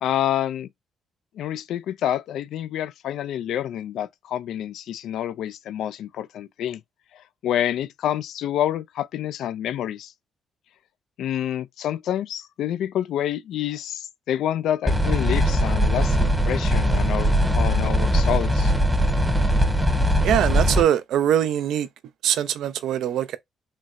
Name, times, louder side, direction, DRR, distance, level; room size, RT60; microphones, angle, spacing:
voice 1, 0.0-0.7 1.4-6.8 7.1-10.1 11.2-18.7, left 11 dB, 80° left, 0.3 m, -28 dB
sound 1, 14.9-20.8, equal, 10° right, 0.7 m, -20 dB
voice 2, 20.2-21.9 22.2-23.4, right 10 dB, 80° right, 0.4 m, -22 dB
4.0 x 2.1 x 2.3 m
cardioid pair, 90°, 0 cm